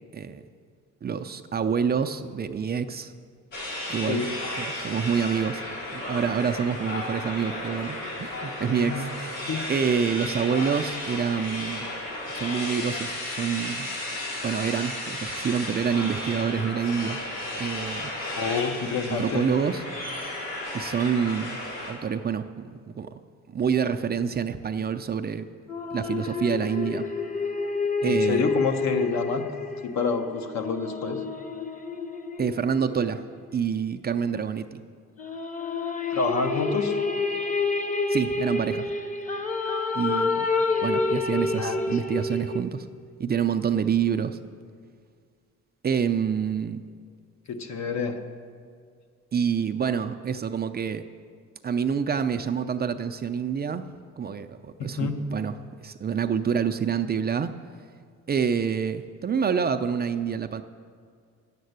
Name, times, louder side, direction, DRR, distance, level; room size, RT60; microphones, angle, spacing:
voice 1, 1.0-3.1 3.9-4.3 4.6-5.6 5.9-11.9 12.3-13.9 14.4-17.2 17.6-18.1 19.2-19.8 20.2-20.4 20.7-21.6 21.9-23.1 23.5-25.5 25.9-27.1 28.0-28.5 32.4-33.2 33.5-34.8 38.1-38.9 39.9-40.5 40.8-42.9 43.2-44.4 45.8-46.8 49.3-51.0 51.6-53.8 54.2-55.5 55.8-57.5 58.3-60.6, right 7 dB, 30° right, 7 dB, 0.5 m, -27 dB
sound 1, 3.5-21.9, left 1 dB, 85° left, 3.4 m, -34 dB
voice 2, 8.7-9.1 9.5-9.7 18.2-19.5 28.0-29.4 29.8-31.2 36.1-37.0 41.6-41.8 47.5-48.2 54.8-55.3, left 4 dB, 65° left, 5 dB, 1.1 m, -28 dB
sound 2, 25.7-33.3 35.2-42.6, left 3 dB, 25° left, 0.9 m, -29 dB
9.4 x 7.5 x 8.0 m, 2.1 s
cardioid pair, 90°, 30 cm